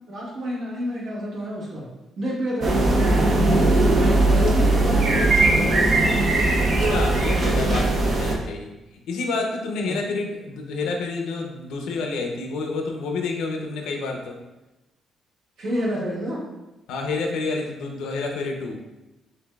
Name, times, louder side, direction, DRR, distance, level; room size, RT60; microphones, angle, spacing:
voice 1, 0.1-1.9 2.2-3.8 4.2-5.8 9.9-10.0 15.6-16.4, equal, 65° right, -5 dB, 1.4 m, -29 dB
sound 1, 2.6-8.3, right 2 dB, 50° right, 0.7 m, -19 dB
voice 2, 6.6-14.4 16.9-18.8, left 3 dB, 85° left, 2 dB, 0.6 m, -29 dB
5.9 x 2.7 x 2.3 m, 1.0 s
cardioid pair, 90°, 0 cm